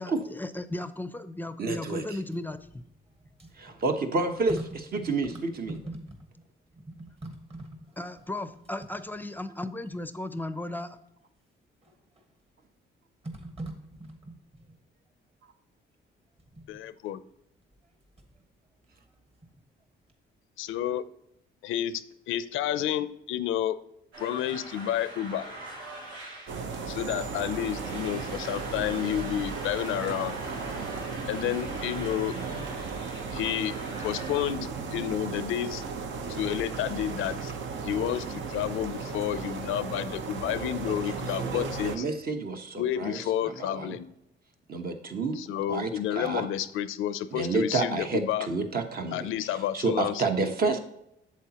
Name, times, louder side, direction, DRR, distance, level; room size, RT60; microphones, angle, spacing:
voice 1, 0.0-2.8 8.0-11.0, left 1 dB, 10° left, 11 dB, 0.5 m, -36 dB
voice 2, 1.6-2.0 3.6-5.8 32.3-32.9 40.9-41.0 41.4-43.9 44.7-45.4 45.7-46.5 47.3-50.8, right 3 dB, 50° right, 6 dB, 1.1 m, -30 dB
sound 1, 2.1-6.5 6.7-9.5 10.1-10.2 11.8-12.3 13.2-14.8 16.4-16.8 17.7-18.4 18.8-19.8 20.1-20.2, right 1 dB, 30° right, 1.5 m, -44 dB
voice 3, 16.7-17.2 20.6-21.0 21.6-22.0 22.3-23.8 24.2-25.4 26.9-30.4 31.3-32.3 33.3-35.8 36.3-37.5 37.8-42.1 42.8-44.1 45.4-48.5 49.1-50.5, left 11 dB, 85° left, 14 dB, 0.5 m, -30 dB
sound 2, 24.1-34.5, right 2 dB, 85° right, 3.2 m, -43 dB
sound 3, 26.5-42.0, right 5 dB, 70° right, 0.9 m, -35 dB
8.1 x 7.3 x 2.9 m, 0.80 s
cardioid pair, 90°, 20 cm